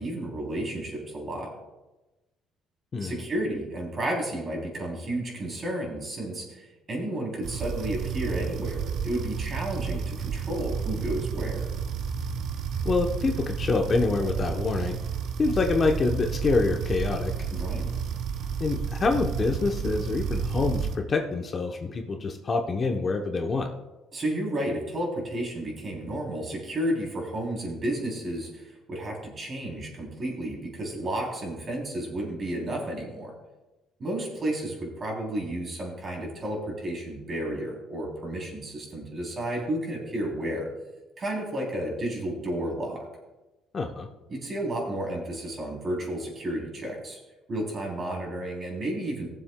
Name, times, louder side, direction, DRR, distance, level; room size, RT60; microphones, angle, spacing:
voice 1, 0.0-1.5 3.0-11.6 17.5-17.9 24.1-33.3 34.0-40.7 41.2-43.0 44.3-47.2 47.5-49.3, right 1 dB, 35° right, 0 dB, 3.2 m, -32 dB
voice 2, 2.9-3.2 12.8-15.0 15.4-17.5 18.6-23.7 43.7-44.1, left 3 dB, 30° left, 3 dB, 0.8 m, -26 dB
sound 1, 7.4-21.0, right 6 dB, 60° right, 0.8 m, -31 dB
20.0 x 7.3 x 2.2 m, 1.1 s
cardioid pair, 130°, 0 cm